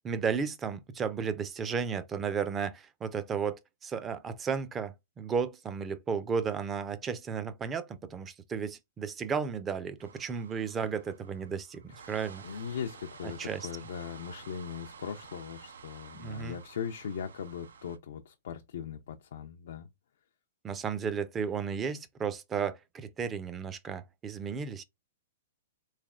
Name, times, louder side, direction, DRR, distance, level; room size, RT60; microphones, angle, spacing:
voice 1, 0.0-11.8 12.1-12.4 13.4-13.7 16.2-16.6 20.6-24.8, right 6 dB, 20° right, 0.4 m, -34 dB
sound 1, 10.0-18.0, right 6 dB, 85° right, 0.5 m, -51 dB
voice 2, 12.4-19.9, left 7 dB, 70° left, 0.4 m, -39 dB
3.4 x 3.2 x 2.4 m
hypercardioid pair, 135°, 0 cm